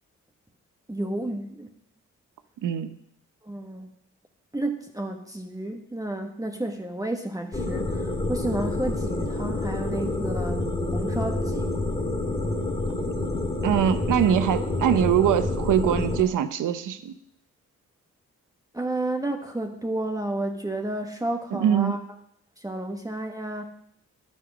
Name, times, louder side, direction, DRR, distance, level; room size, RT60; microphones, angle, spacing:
voice 1, 0.9-1.7 3.4-3.9 4.5-11.9 18.7-22.0 22.6-23.6, right 1 dB, 10° right, 3 dB, 1.3 m, -31 dB
voice 2, 2.6-3.0 13.6-17.2 21.5-22.0, right 9 dB, 85° right, 11 dB, 0.9 m, -23 dB
sound 1, 7.5-16.2, left 2 dB, 20° left, 2.6 m, -28 dB
10.0 x 9.3 x 6.1 m, 0.69 s
cardioid pair, 60°, 30 cm